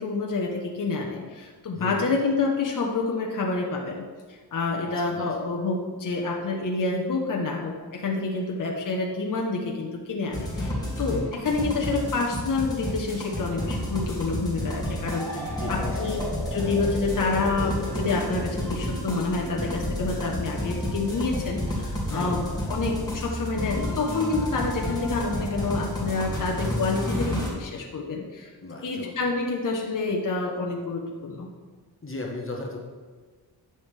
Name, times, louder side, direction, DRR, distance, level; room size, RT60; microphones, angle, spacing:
voice 1, 0.0-4.1 4.5-22.4 22.7-28.5 28.8-31.5, left 3 dB, 50° left, 0 dB, 1.0 m, -28 dB
voice 2, 1.7-2.1 4.8-5.4 11.1-11.4 15.5-16.2 22.1-22.4 28.6-29.1 32.0-32.8, left 2 dB, 30° left, -1 dB, 1.3 m, -36 dB
sound 1, 10.3-27.5, left 1 dB, 10° left, 2.3 m, -31 dB
sound 2, 15.1-22.8, right 1 dB, 65° right, 1.7 m, -39 dB
10.5 x 7.2 x 3.4 m, 1.5 s
wide cardioid pair, 105°, 42 cm